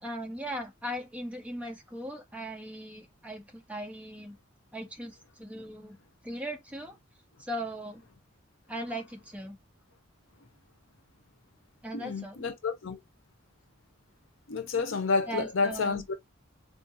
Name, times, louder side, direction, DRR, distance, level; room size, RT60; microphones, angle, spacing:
voice 1, 0.0-4.4 4.7-6.0 6.2-7.0 7.4-8.0 8.7-9.6 11.8-12.4 15.3-16.0, right 1 dB, 5° right, 0.6 m, -38 dB
voice 2, 11.9-13.0 14.5-16.1, left 4 dB, 70° left, 0.6 m, -30 dB
3.6 x 2.4 x 2.7 m
head